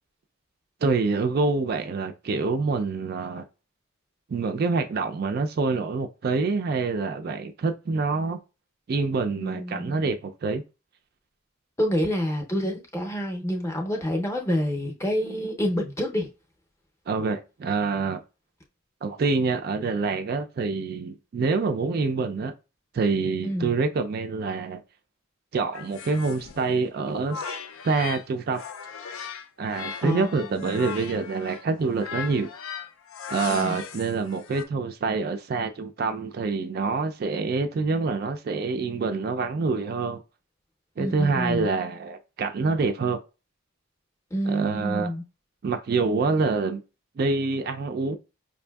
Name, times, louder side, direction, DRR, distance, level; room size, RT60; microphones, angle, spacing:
voice 1, 0.8-3.5 4.3-8.4 8.9-10.6 17.1-18.2 19.0-22.5 22.9-24.8 25.5-27.6 27.8-28.6 29.6-32.5 32.8-32.9 33.3-40.2 41.0-43.2 44.4-45.1 45.6-46.8 47.2-48.2, right 4 dB, 50° right, 0.3 m, -26 dB
voice 2, 9.4-10.1 11.8-16.3 23.4-23.7 30.0-30.6 33.5-33.8 41.0-41.7 44.3-45.2, equal, 15° left, 0.6 m, -28 dB
sound 1, 25.7-28.2 28.5-34.6, left 6 dB, 80° left, 0.4 m, -38 dB
5.2 x 2.5 x 2.2 m
head